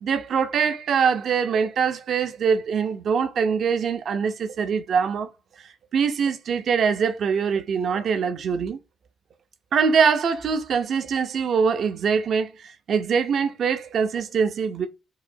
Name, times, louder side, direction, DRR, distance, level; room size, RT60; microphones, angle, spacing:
voice 1, 0.0-5.3 5.9-8.8 9.7-14.9, right 6 dB, 60° right, 0.5 m, -23 dB
4.7 x 2.0 x 2.6 m
cardioid pair, 90°, 0 cm